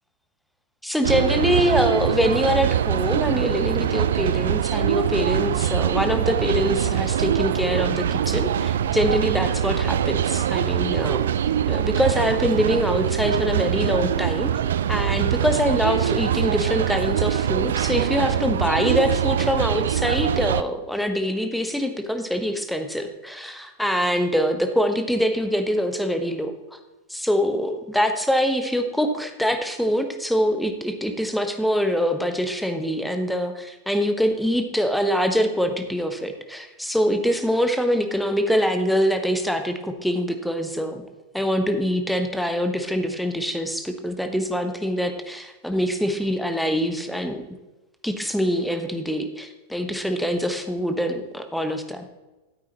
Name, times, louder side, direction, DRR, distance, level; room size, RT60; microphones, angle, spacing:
voice 1, 0.8-11.2 11.7-14.5 14.9-26.8 27.1-41.0 41.3-47.4 48.0-52.1, equal, ahead, 6 dB, 1.1 m, -24 dB
sound 1, 1.0-20.6, right 9 dB, 60° right, 0.4 m, -23 dB
13.5 x 8.9 x 3.0 m, 1.1 s
figure-of-eight pair, 90°, 0 cm